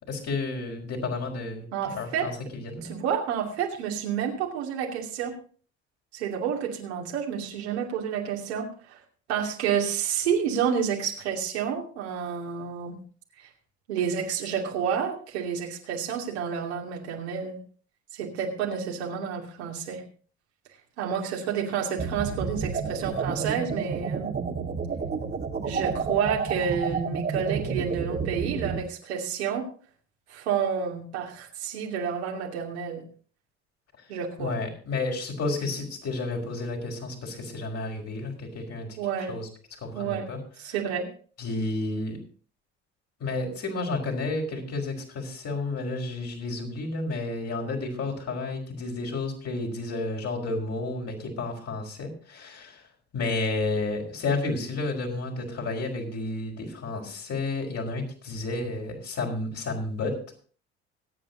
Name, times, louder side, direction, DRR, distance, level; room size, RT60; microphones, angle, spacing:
voice 1, 0.1-3.0 34.4-38.9 39.3-39.5 39.8-40.4 40.6-40.8 41.4-42.2 43.2-52.8 53.1-60.2, left 2 dB, 50° left, 1 dB, 5.2 m, -31 dB
voice 2, 1.7-2.3 2.9-5.4 6.1-9.0 9.3-13.0 13.4-13.5 13.9-17.6 18.1-20.0 21.0-24.3 25.7-29.7 30.3-33.0 34.1-34.5 39.0-39.3 39.9-40.3 40.6-41.1, right 7 dB, 85° right, 0 dB, 2.7 m, -29 dB
sound 1, 22.0-28.8, right 5 dB, 30° right, 2.0 m, -30 dB
25.0 x 8.9 x 2.8 m, 0.42 s
hypercardioid pair, 60°, 32 cm